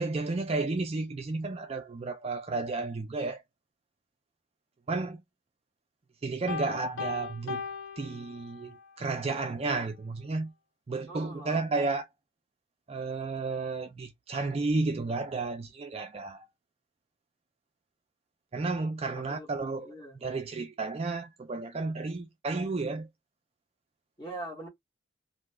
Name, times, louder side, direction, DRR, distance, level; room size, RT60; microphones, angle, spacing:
voice 1, 0.0-3.4 4.9-5.2 6.2-7.6 8.0-10.5 10.9-12.1 12.9-16.5 18.5-23.1, right 3 dB, 30° right, 0.3 m, -32 dB
Piano, 6.5-8.9, left 5 dB, 85° left, 0.7 m, -38 dB
voice 2, 11.1-11.6 19.1-20.2 24.2-24.7, right 1 dB, 20° left, 1.1 m, -42 dB
2.7 x 2.3 x 3.2 m
head